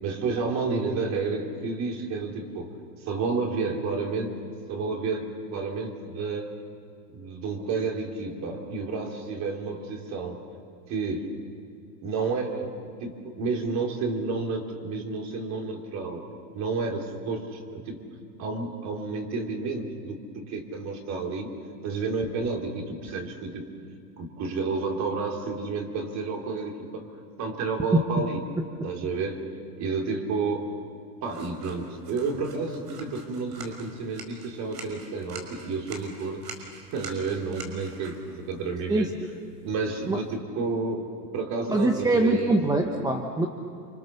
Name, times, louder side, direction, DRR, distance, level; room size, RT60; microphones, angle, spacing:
voice 1, 0.0-2.8 3.1-4.4 4.7-6.5 7.1-10.4 10.9-11.3 12.0-16.2 16.5-18.0 18.4-21.5 21.8-23.7 24.2-27.1 27.4-28.4 28.8-29.4 29.8-30.7 31.2-36.4 36.9-39.1 39.6-41.0 41.3-42.6, right 4 dB, 35° right, 2 dB, 3.5 m, -30 dB
sound 1, 31.3-40.4, right 4 dB, 80° right, 6.1 m, -46 dB
voice 2, 38.9-39.3 40.1-40.2 41.7-43.5, right 2 dB, 5° right, 4 dB, 0.9 m, -23 dB
29.5 x 25.5 x 7.0 m, 2.4 s
supercardioid pair, 140°, 49 cm